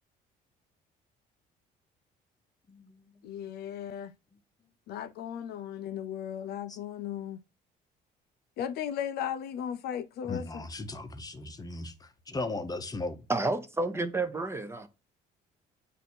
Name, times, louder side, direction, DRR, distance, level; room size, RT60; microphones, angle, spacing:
voice 1, 2.7-3.1 6.7-6.8 10.3-13.2, left 2 dB, 20° left, 0.8 m, -37 dB
voice 2, 3.2-4.1 4.9-7.4 8.6-10.6, left 9 dB, 70° left, 0.5 m, -36 dB
voice 3, 13.3-14.9, right 2 dB, 15° right, 0.7 m, -30 dB
8.0 x 2.7 x 4.3 m
cardioid pair, 110°, 17 cm